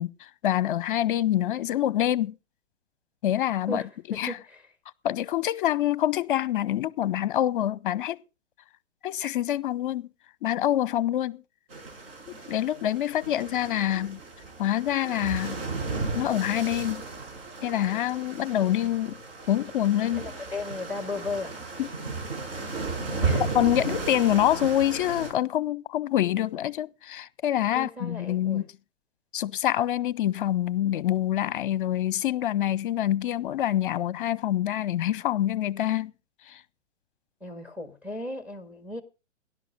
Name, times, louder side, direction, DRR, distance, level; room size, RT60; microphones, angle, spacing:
voice 1, 0.0-2.3 3.2-3.8 4.2-4.4 5.0-8.2 9.0-10.1 10.4-11.4 12.3-14.2 14.6-15.6 16.1-17.0 17.6-19.2 19.5-20.3 21.8-21.9 23.5-28.7 29.3-36.1 36.5-36.6, left 12 dB, 45° left, 0.8 m, -26 dB
voice 2, 3.7-4.6 20.2-21.6 23.2-23.4 27.7-28.6 37.4-39.0, left 2 dB, 5° right, 1.8 m, -36 dB
sound 1, 11.7-25.3, right 4 dB, 55° right, 5.8 m, -34 dB
18.0 x 11.0 x 3.7 m
figure-of-eight pair, 120°, 36 cm